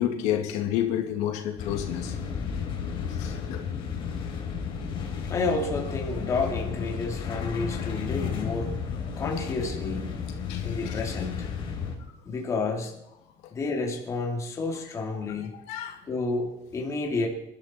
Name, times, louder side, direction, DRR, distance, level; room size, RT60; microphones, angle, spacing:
voice 1, 0.0-2.1 3.2-3.6 10.5-10.9 15.7-16.0, left 11 dB, 80° left, 4 dB, 2.5 m, -29 dB
sound 1, 1.6-12.0, left 6 dB, 45° left, 3.8 m, -33 dB
voice 2, 5.2-8.7 9.2-10.1 10.6-11.5 12.3-12.9 13.5-15.5 16.1-17.3, left 3 dB, 25° left, 0 dB, 2.7 m, -30 dB
26.5 x 12.0 x 4.4 m, 0.85 s
cardioid pair, 165°, 12 cm